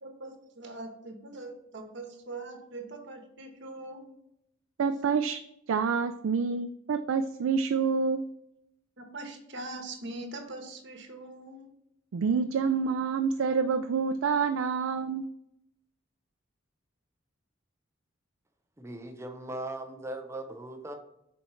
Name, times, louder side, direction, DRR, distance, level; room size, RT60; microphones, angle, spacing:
voice 1, 0.0-4.0 9.0-11.7, right 2 dB, 60° right, 1.2 m, -42 dB
voice 2, 4.8-5.4 5.7-8.3 12.1-15.3, right 5 dB, 75° right, 0.4 m, -27 dB
voice 3, 18.8-20.9, right 1 dB, 15° right, 0.6 m, -39 dB
7.0 x 4.4 x 3.1 m
head